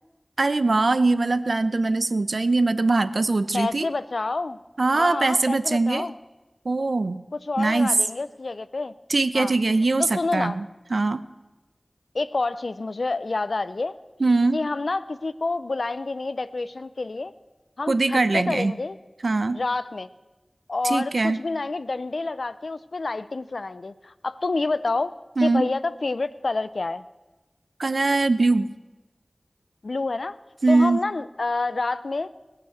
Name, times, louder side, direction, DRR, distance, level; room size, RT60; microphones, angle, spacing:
voice 1, 0.4-3.9 4.8-6.0 6.6-7.2 7.6-7.9 9.1-10.6 10.9-11.2 14.2-14.6 17.9-18.7 19.2-19.6 20.8-21.4 25.4-25.7 27.8-28.7 30.6-31.0, right 3 dB, 70° right, 14 dB, 0.6 m, -21 dB
voice 2, 3.5-4.6 4.9-6.1 7.3-8.9 9.3-9.5 10.0-10.6 12.1-14.0 14.5-17.3 17.8-19.0 19.5-20.1 20.7-25.1 25.4-27.0 29.8-30.4 30.7-32.3, left 3 dB, 80° left, 16 dB, 0.5 m, -28 dB
20.0 x 6.9 x 7.8 m, 1.1 s
wide cardioid pair, 60°, 0 cm